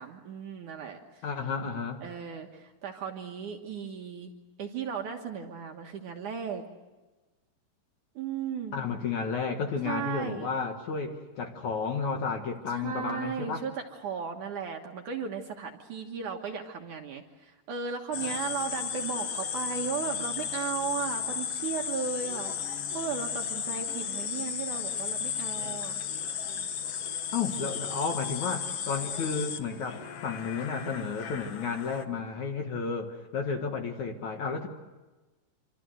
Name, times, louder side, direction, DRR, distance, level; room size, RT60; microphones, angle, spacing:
voice 1, 0.0-1.2 2.0-4.3 4.6-6.6 8.2-8.8 9.8-10.5 12.7-26.0, right 6 dB, 60° right, 2 dB, 2.4 m, -36 dB
voice 2, 1.2-2.0 8.7-13.6 27.3-34.7, left 5 dB, 55° left, 4 dB, 2.3 m, -32 dB
sound 1, 18.1-32.0, left 8 dB, 80° left, 1.3 m, -34 dB
27.5 x 25.5 x 7.8 m, 1.2 s
omnidirectional pair, 4.9 m